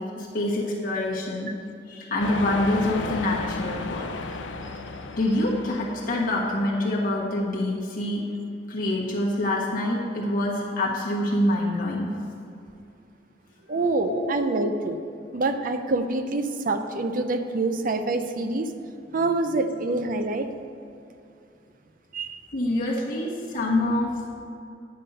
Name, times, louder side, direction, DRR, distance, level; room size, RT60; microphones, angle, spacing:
voice 1, 0.0-1.5 1.9-4.1 5.1-8.2 8.7-12.1 14.1-14.2 22.5-24.1, left 1 dB, 50° left, -4 dB, 1.2 m, -26 dB
sound 1, 2.2-6.7, left 3 dB, 90° left, 0.5 m, -34 dB
voice 2, 13.7-15.0 15.3-18.7 19.1-20.5 22.1-22.4, right 2 dB, 50° right, 8 dB, 0.5 m, -26 dB
9.6 x 5.5 x 5.4 m, 2.6 s
head